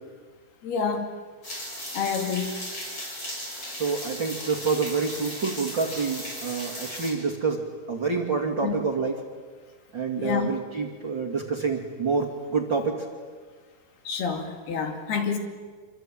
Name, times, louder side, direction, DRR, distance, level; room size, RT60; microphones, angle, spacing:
voice 1, 0.6-1.1 1.9-2.5 8.6-8.8 10.2-10.5 14.1-15.4, left 6 dB, 70° left, 4 dB, 4.2 m, -28 dB
sound 1, 1.4-7.1, left 1 dB, 25° left, 6.9 m, -36 dB
voice 2, 3.7-7.6 7.9-9.2 9.9-13.0, right 4 dB, 35° right, -2 dB, 2.5 m, -27 dB
27.0 x 24.5 x 9.0 m, 1.5 s
omnidirectional pair, 4.8 m